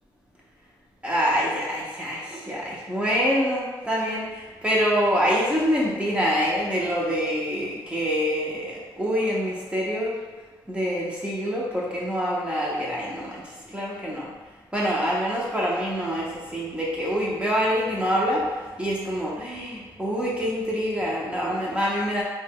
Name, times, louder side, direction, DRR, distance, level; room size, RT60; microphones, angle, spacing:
voice 1, 1.0-10.2 10.7-13.4 13.7-14.3 14.7-18.5 18.8-22.2, equal, 15° right, -5 dB, 0.7 m, -25 dB
3.2 x 2.2 x 3.5 m, 1.3 s
cardioid pair, 80°, 9 cm